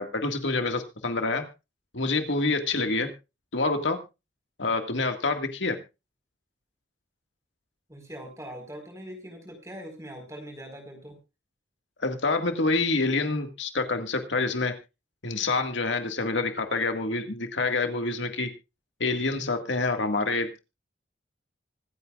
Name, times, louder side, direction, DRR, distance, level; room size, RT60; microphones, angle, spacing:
voice 1, 0.0-1.5 1.9-3.1 3.5-4.0 4.6-5.8 12.0-14.8 15.2-18.5 19.0-20.6, left 3 dB, 80° left, 6 dB, 1.9 m, -27 dB
voice 2, 7.9-11.2, equal, 15° right, 3 dB, 4.7 m, -42 dB
25.0 x 9.2 x 2.4 m, 0.27 s
head